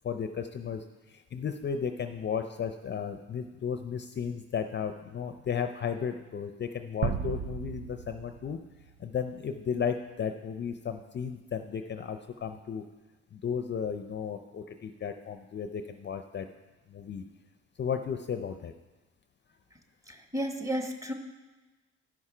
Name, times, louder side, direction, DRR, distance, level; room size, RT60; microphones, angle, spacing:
voice 1, 0.0-8.6 9.0-12.8 13.3-16.5 16.9-17.2 17.8-18.7, left 7 dB, 35° left, 7 dB, 0.5 m, -34 dB
sound 1, 7.0-9.5, right 7 dB, 55° right, 0.6 m, -35 dB
voice 2, 20.1-21.1, equal, 10° right, 4 dB, 1.3 m, -33 dB
12.5 x 5.5 x 4.9 m, 1.2 s
cardioid pair, 90°, 30 cm